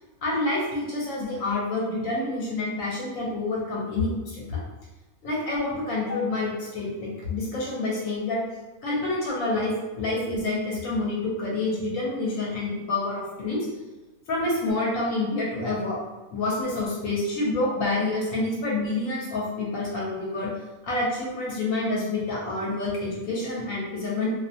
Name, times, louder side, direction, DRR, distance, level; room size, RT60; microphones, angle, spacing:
voice 1, 0.2-4.6 5.2-8.4 8.8-13.7 14.3-16.0 16.3-20.5 20.8-24.3, left 2 dB, 70° left, -4 dB, 0.9 m, -28 dB
2.5 x 2.1 x 2.6 m, 1.1 s
omnidirectional pair, 1.6 m